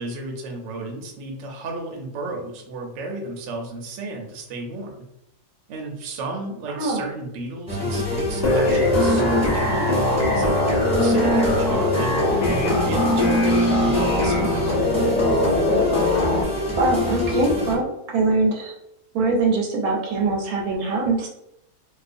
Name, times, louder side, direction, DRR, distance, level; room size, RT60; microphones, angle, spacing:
voice 1, 0.0-5.1 5.7-15.2, right 2 dB, 65° right, 1 dB, 0.8 m, -33 dB
voice 2, 6.8-7.1 16.0-16.3 16.8-18.7 19.1-21.3, right 3 dB, 85° right, 1 dB, 1.1 m, -23 dB
sound 1, 7.7-17.8, left 1 dB, 5° right, 0.6 m, -24 dB
sound 2, 8.4-16.4, left 2 dB, 50° left, 0.5 m, -22 dB
2.4 x 2.4 x 2.5 m, 0.83 s
omnidirectional pair, 1.5 m